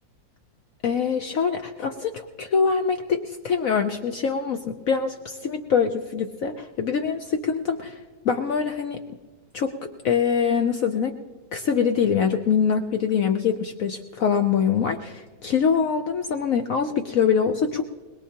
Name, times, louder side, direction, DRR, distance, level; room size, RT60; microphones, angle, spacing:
voice 1, 0.8-8.0 8.2-9.0 9.5-9.7 10.0-11.2 11.5-17.9, left 6 dB, 65° left, 6 dB, 0.8 m, -24 dB
21.5 x 20.5 x 2.9 m, 1.3 s
omnidirectional pair, 2.1 m